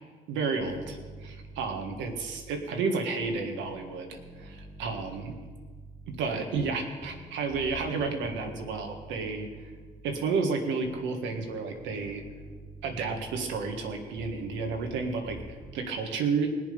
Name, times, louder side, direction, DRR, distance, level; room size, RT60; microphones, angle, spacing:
voice 1, 0.3-5.4 6.1-9.7 10.0-12.2 12.8-16.5, right 4 dB, 90° right, 4 dB, 1.6 m, -31 dB
sound 1, 0.6-2.8 3.2-10.3 10.8-15.8, right 2 dB, 5° right, 1.3 m, -47 dB
19.5 x 7.4 x 5.2 m, 1.5 s
supercardioid pair, 60°, 19 cm